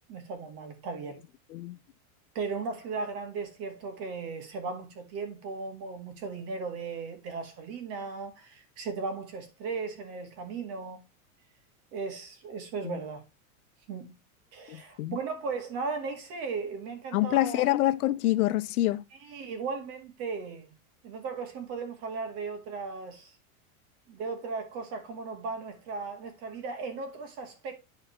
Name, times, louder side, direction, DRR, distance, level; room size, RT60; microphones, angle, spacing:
voice 1, 0.1-1.2 2.4-11.0 11.9-13.2 13.9-14.1 14.5-17.7 19.2-20.7 21.0-23.4 24.1-27.8, right 4 dB, 35° right, 2.0 m, -36 dB
voice 2, 14.7-15.2 17.1-19.0, left 15 dB, 90° left, 0.8 m, -26 dB
11.5 x 4.1 x 3.2 m
supercardioid pair, 170°, 43 cm